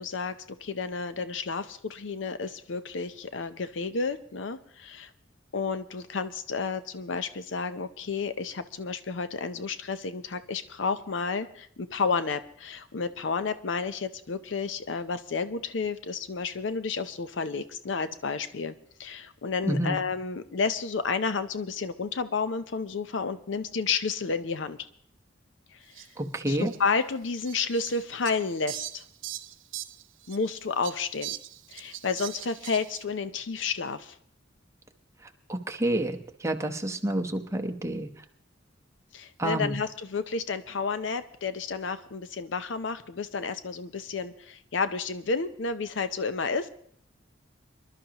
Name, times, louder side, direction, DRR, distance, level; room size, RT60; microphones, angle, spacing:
voice 1, 0.0-5.1 5.5-18.7 19.0-24.8 25.7-26.1 26.5-29.0 30.3-31.4 31.7-34.2 39.1-46.7, left 4 dB, 70° left, 11 dB, 0.6 m, -31 dB
voice 2, 19.7-20.0 26.2-26.7 35.2-38.1 39.4-39.8, right 1 dB, 15° right, 2 dB, 0.9 m, -29 dB
Fowl, 25.9-26.1 26.6-26.8 27.4-30.5 30.8-33.0, right 14 dB, 90° right, 0.6 m, -40 dB
25.5 x 11.5 x 2.9 m, 0.63 s
head